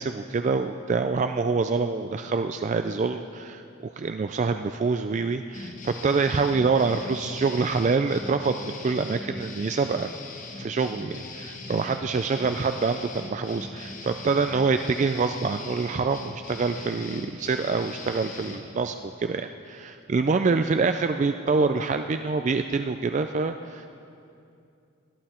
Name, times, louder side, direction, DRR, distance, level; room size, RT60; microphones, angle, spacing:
voice 1, 0.0-10.1 10.6-23.9, right 4 dB, 35° right, 8 dB, 0.3 m, -26 dB
sound 1, 5.5-18.7, left 3 dB, 40° left, 1.2 m, -40 dB
20.0 x 11.5 x 4.3 m, 2.5 s
head